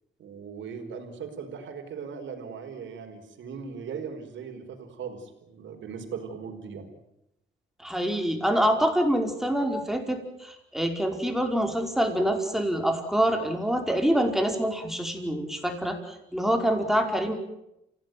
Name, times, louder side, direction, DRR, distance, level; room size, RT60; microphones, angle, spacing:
voice 1, 0.2-6.9, right 6 dB, 70° right, 7 dB, 4.9 m, -39 dB
voice 2, 7.8-17.3, equal, ahead, 4 dB, 5.0 m, -26 dB
28.0 x 17.0 x 9.4 m, 0.84 s
cardioid pair, 90°, 20 cm